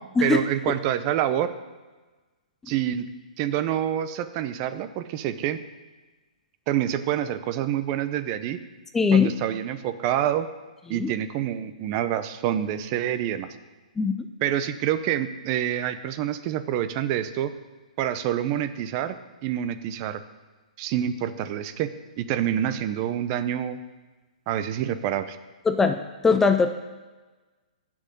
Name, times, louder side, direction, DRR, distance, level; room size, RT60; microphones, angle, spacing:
voice 1, 0.2-1.5 2.7-3.1 3.4-5.6 6.7-8.6 9.1-10.5 10.9-13.5 14.4-17.5 18.0-20.2 20.8-21.9 22.2-23.8 24.5-25.4, right 11 dB, 35° right, 11 dB, 0.8 m, -27 dB
voice 2, 8.9-9.3 10.9-11.1 14.0-14.2 25.7-26.7, left 5 dB, 10° left, 7 dB, 0.5 m, -20 dB
9.8 x 6.2 x 8.4 m, 1.3 s
hypercardioid pair, 140°, 4 cm